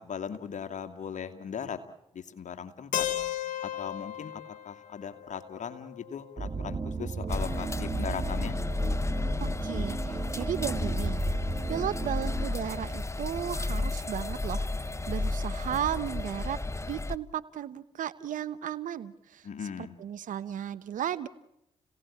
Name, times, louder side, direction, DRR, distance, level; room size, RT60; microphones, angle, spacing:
voice 1, 0.0-1.8 2.1-3.1 3.6-8.6 19.4-19.9, left 7 dB, 65° left, 7 dB, 2.4 m, -38 dB
Keyboard (musical), 2.9-6.8, left 12 dB, 80° left, 1.2 m, -36 dB
sound 1, 6.4-12.5, right 4 dB, 40° right, 2.7 m, -35 dB
sound 2, 7.3-17.2, left 2 dB, 20° left, 0.9 m, -32 dB
voice 2, 9.4-11.2 11.7-16.6 16.9-19.5 20.0-21.3, right 10 dB, 75° right, 15 dB, 1.1 m, -35 dB
30.0 x 17.5 x 8.7 m, 0.86 s
supercardioid pair, 40°, 13 cm